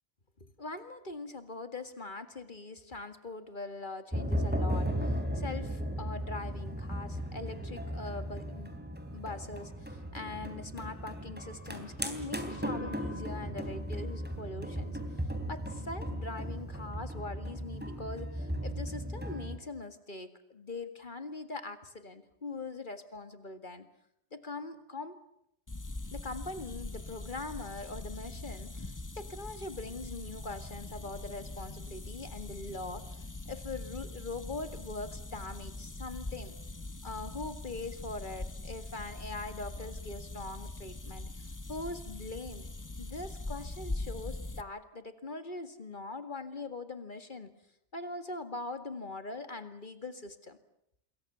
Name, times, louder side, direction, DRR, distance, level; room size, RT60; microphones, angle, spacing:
voice 1, 0.4-8.8 9.1-15.0 15.5-23.9 24.3-25.2 26.1-36.5 37.0-42.7 43.0-47.5 47.9-50.6, left 3 dB, 45° left, 9 dB, 2.1 m, -42 dB
sound 1, 4.1-19.6, equal, 10° right, 3.4 m, -36 dB
sound 2, 25.7-44.6, left 2 dB, 20° left, 0.9 m, -42 dB
27.5 x 22.5 x 7.0 m, 0.76 s
omnidirectional pair, 1.2 m